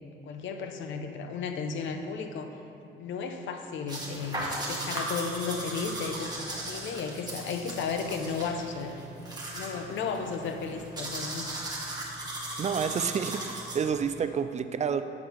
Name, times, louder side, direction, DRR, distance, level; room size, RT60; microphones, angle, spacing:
voice 1, 0.2-2.5 3.0-9.0 9.5-11.5, left 5 dB, 75° left, 6 dB, 0.7 m, -34 dB
sound 1, 3.9-14.1, right 1 dB, 20° right, 1.7 m, -37 dB
voice 2, 12.6-15.0, right 7 dB, 35° right, 11 dB, 0.4 m, -29 dB
7.3 x 4.5 x 6.4 m, 2.6 s
cardioid pair, 90°, 20 cm